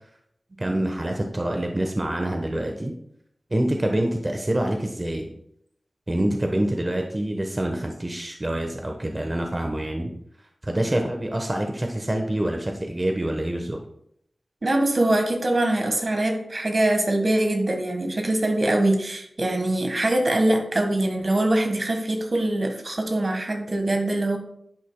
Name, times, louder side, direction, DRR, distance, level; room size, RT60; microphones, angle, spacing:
voice 1, 0.6-2.9 3.5-5.3 6.1-10.1 10.6-13.8, right 1 dB, 35° right, 3 dB, 1.0 m, -26 dB
voice 2, 14.6-24.4, right 1 dB, 55° right, 4 dB, 1.4 m, -23 dB
10.5 x 8.2 x 2.2 m, 0.73 s
cardioid pair, 45°, 0 cm